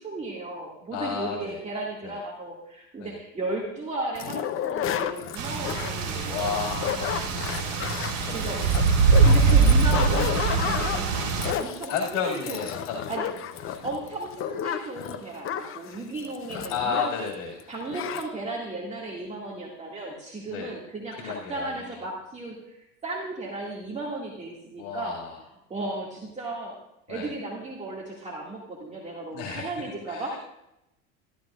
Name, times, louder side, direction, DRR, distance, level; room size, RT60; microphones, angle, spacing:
voice 1, 0.0-6.6 8.3-8.6 9.2-11.2 11.6-12.6 13.1-13.3 13.8-17.1 17.7-22.7 23.0-25.2 25.7-26.8 27.1-30.4, right 2 dB, 20° right, -4 dB, 2.1 m, -35 dB
voice 2, 0.9-1.6 2.0-2.2 3.0-3.1 6.2-7.2 8.1-8.6 8.9-9.3 9.6-9.8 10.8-11.0 11.9-13.1 13.7-13.8 16.5-17.6 20.5-20.7 21.1-22.0 24.8-25.3 27.1-27.3 29.3-29.7 30.1-30.4, left 6 dB, 70° left, -2 dB, 2.3 m, -32 dB
sound 1, 4.1-17.3 17.6-17.7 17.9-18.3, left 9 dB, 35° left, 0.8 m, -32 dB
sound 2, 5.4-11.5, right 4 dB, 55° right, 3.7 m, -23 dB
14.0 x 13.0 x 2.5 m, 0.85 s
supercardioid pair, 125°, 36 cm